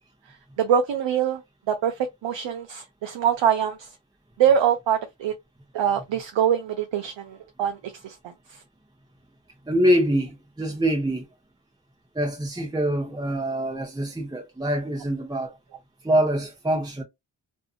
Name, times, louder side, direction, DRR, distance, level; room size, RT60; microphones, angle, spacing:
voice 1, 0.6-1.4 1.7-3.9 4.4-5.3 5.7-8.6, right 8 dB, 70° right, 0.6 m, -24 dB
voice 2, 9.7-11.2 12.1-15.5 16.0-17.0, equal, 10° right, 0.8 m, -24 dB
2.7 x 2.4 x 2.4 m
cardioid pair, 45°, 47 cm